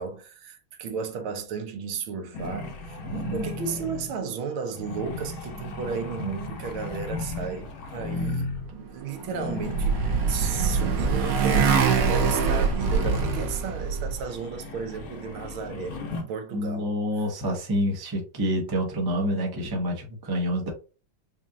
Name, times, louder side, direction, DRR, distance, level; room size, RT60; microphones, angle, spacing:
voice 1, 0.0-16.9, right 6 dB, 75° right, 1.5 m, -34 dB
sound 1, 2.3-4.3 4.7-8.7 9.2-13.7 14.1-16.2, left 3 dB, 55° left, 1.1 m, -35 dB
voice 2, 3.0-3.5 16.5-20.7, equal, 35° right, 0.3 m, -28 dB
Motorcycle, 9.2-14.2, right 5 dB, 60° right, 1.0 m, -24 dB
5.3 x 2.4 x 2.7 m
omnidirectional pair, 2.3 m